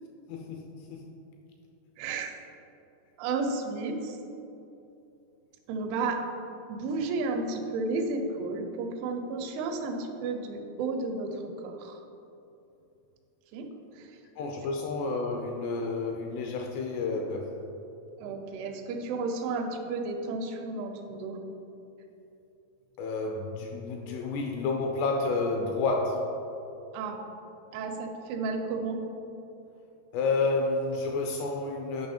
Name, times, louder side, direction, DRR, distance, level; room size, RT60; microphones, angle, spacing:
voice 1, 0.3-1.0 14.4-17.7 23.0-26.4 30.1-32.1, left 3 dB, 80° left, 3 dB, 2.5 m, -30 dB
voice 2, 2.0-2.3 3.2-4.2 5.7-6.2 6.7-12.0 13.5-14.1 18.2-21.4 26.9-27.2 27.7-29.0, right 3 dB, 90° right, 4 dB, 3.2 m, -32 dB
9.3 x 5.5 x 4.3 m, 2.8 s
omnidirectional pair, 5.3 m